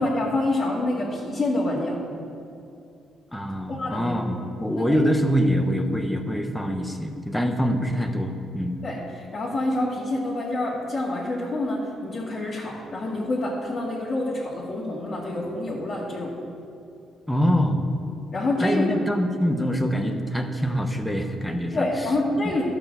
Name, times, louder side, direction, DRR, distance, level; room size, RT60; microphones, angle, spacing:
voice 1, 0.0-2.0 3.7-4.1 4.6-5.0 8.8-16.3 18.3-18.9 21.7-22.6, left 2 dB, 45° left, -6 dB, 2.0 m, -27 dB
voice 2, 3.3-8.8 17.3-17.9 18.6-21.9 22.4-22.6, equal, 5° left, 4 dB, 1.0 m, -24 dB
12.0 x 5.8 x 7.3 m, 2.5 s
cardioid pair, 90°, 0 cm